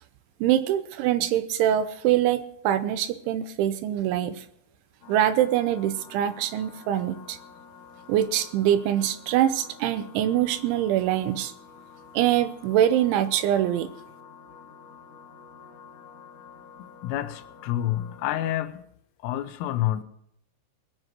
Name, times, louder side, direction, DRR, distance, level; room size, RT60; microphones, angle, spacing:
voice 1, 0.4-4.5 5.1-7.4 8.1-11.5 12.1-13.9, right 11 dB, 80° right, 2.9 m, -24 dB
sound 1, 5.0-18.6, left 6 dB, 55° left, 2.5 m, -49 dB
voice 2, 17.0-18.9 19.2-20.0, left 13 dB, 80° left, 3.4 m, -28 dB
21.0 x 7.8 x 6.0 m
omnidirectional pair, 5.8 m